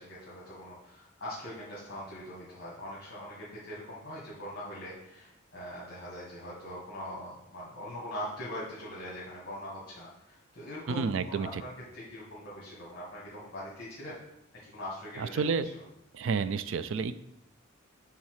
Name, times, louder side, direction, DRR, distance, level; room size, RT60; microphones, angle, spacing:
voice 1, 0.0-14.2 14.6-15.4, left 1 dB, 50° left, -7 dB, 1.6 m, -42 dB
voice 2, 10.9-11.6 15.2-15.7 16.1-17.2, right 5 dB, 65° right, 13 dB, 0.4 m, -30 dB
7.2 x 3.8 x 4.8 m, 0.84 s
head